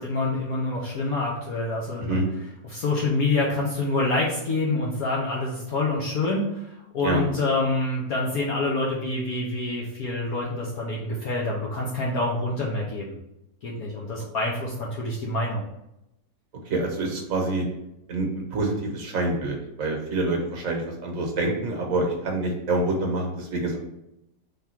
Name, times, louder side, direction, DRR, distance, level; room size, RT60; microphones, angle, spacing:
voice 1, 0.0-2.2 2.6-6.6 6.9-13.2 13.6-15.6, left 2 dB, 65° left, -3 dB, 1.2 m, -26 dB
voice 2, 16.7-17.6 18.1-23.8, right 2 dB, 60° right, 1 dB, 1.2 m, -26 dB
3.6 x 3.5 x 4.3 m, 0.85 s
omnidirectional pair, 1.8 m